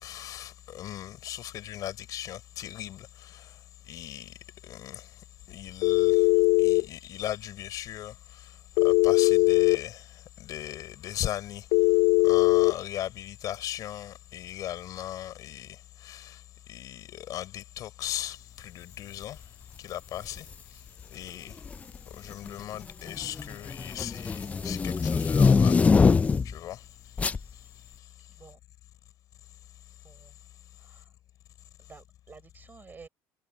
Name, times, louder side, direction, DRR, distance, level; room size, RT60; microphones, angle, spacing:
voice 1, 0.0-3.6 3.9-4.4 4.6-5.1 5.5-6.3 6.6-11.7 12.2-16.4 16.7-19.4 19.8-20.5 21.1-21.6 22.1-25.8 26.4-26.8, left 12 dB, 60° left, 4.4 m, -38 dB
Telephone, 5.8-6.8 8.8-9.8 11.7-12.7, left 21 dB, 85° left, 0.5 m, -20 dB
sound 1, 20.3-20.5 21.5-22.0 22.3-26.6 27.2-27.4, left 5 dB, 20° left, 0.4 m, -23 dB
voice 2, 28.3-28.6 30.0-30.4 30.8-31.1 31.8-33.1, right 5 dB, 25° right, 5.8 m, -52 dB
cardioid pair, 110°, 7 cm